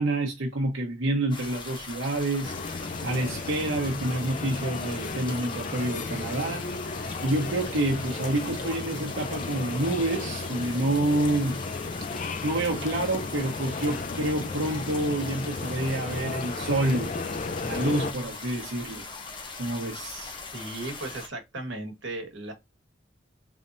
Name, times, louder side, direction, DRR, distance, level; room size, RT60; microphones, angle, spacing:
voice 1, 0.0-6.7 7.2-11.6 12.4-17.1 17.6-19.0 19.6-20.4, right 1 dB, 90° right, 1.0 m, -28 dB
sound 1, 1.3-21.3, left 4 dB, 25° left, 0.9 m, -40 dB
sound 2, 2.4-18.1, left 3 dB, 40° left, 0.4 m, -34 dB
voice 2, 20.5-22.5, right 2 dB, 75° right, 1.3 m, -36 dB
4.0 x 3.4 x 2.6 m
head